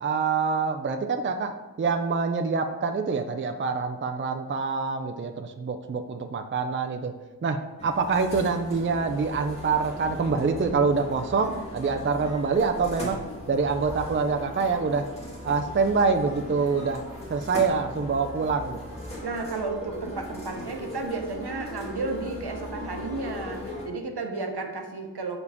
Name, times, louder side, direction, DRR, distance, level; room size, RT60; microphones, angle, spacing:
voice 1, 0.0-7.1 7.4-13.2 13.5-15.1 15.4-17.0 17.3-18.8, right 4 dB, 30° right, 6 dB, 0.4 m, -26 dB
sound 1, 7.8-23.9, left 1 dB, 15° left, 1.7 m, -38 dB
voice 2, 19.2-25.4, right 3 dB, 65° right, 3 dB, 0.9 m, -33 dB
6.5 x 4.8 x 3.5 m, 1.2 s
wide cardioid pair, 60°, 41 cm